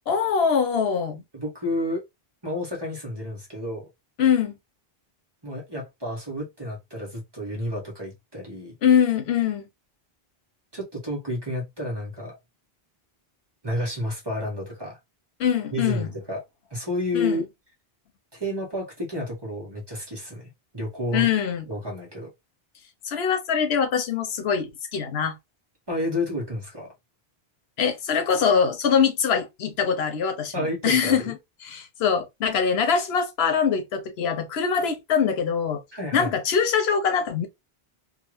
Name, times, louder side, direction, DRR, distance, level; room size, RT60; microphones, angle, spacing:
voice 1, 0.1-1.2 4.2-4.6 8.8-9.6 15.4-16.1 17.1-17.4 21.1-21.7 23.0-25.4 27.8-31.3 31.6-35.8 36.1-37.5, left 7 dB, 85° left, 0.9 m, -23 dB
voice 2, 1.3-2.0 2.4-3.9 5.4-8.8 10.7-12.4 13.6-15.0 15.7-16.4 16.7-17.5 18.3-21.3 21.7-22.3 25.9-26.9 30.5-31.3 35.9-36.3, left 1 dB, 25° right, 0.9 m, -30 dB
2.4 x 2.4 x 3.0 m
omnidirectional pair, 1.0 m